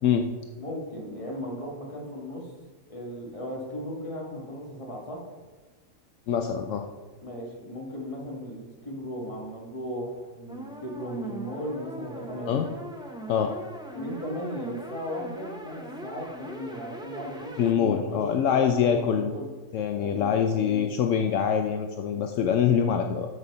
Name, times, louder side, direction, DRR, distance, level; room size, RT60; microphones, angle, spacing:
voice 1, 0.6-2.5 2.9-5.2 7.2-12.6 13.9-19.5 20.0-20.8, equal, 25° left, -2 dB, 1.7 m, -36 dB
voice 2, 6.3-6.9 12.5-12.7 13.3-13.5 17.6-19.3 19.7-23.3, left 8 dB, 75° left, 5 dB, 0.9 m, -24 dB
sound 1, 10.5-17.7, right 1 dB, 5° right, 0.8 m, -40 dB
7.1 x 6.4 x 5.3 m, 1.3 s
omnidirectional pair, 1.4 m